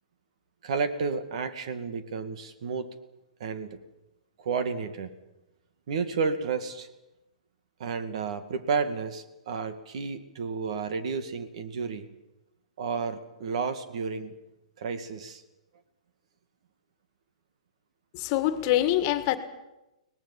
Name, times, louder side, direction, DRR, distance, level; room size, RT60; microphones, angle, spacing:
voice 1, 0.6-2.9 3.4-3.8 4.4-5.1 5.9-6.9 7.8-12.1 12.8-14.3 14.8-15.4, right 5 dB, 60° right, 10 dB, 2.2 m, -31 dB
voice 2, 18.1-19.4, left 13 dB, 40° left, 11 dB, 1.8 m, -25 dB
23.5 x 19.0 x 7.4 m, 0.95 s
hypercardioid pair, 145°, 4 cm